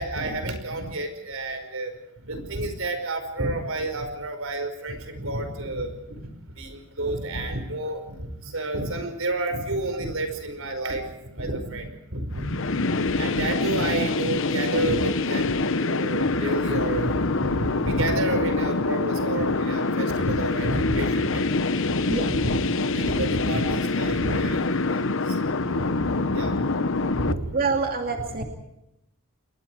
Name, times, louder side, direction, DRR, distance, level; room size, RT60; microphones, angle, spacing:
voice 1, 0.0-1.9 2.2-6.3 6.6-11.1 11.4-21.6 21.9-22.6 22.9-26.7 27.0-27.7, right 2 dB, 70° right, 8 dB, 5.2 m, -30 dB
sound 1, 12.4-27.3, left 3 dB, 65° left, 1.0 m, -25 dB
voice 2, 27.5-28.4, right 4 dB, 45° right, 3 dB, 2.5 m, -26 dB
29.0 x 22.0 x 4.8 m, 0.86 s
head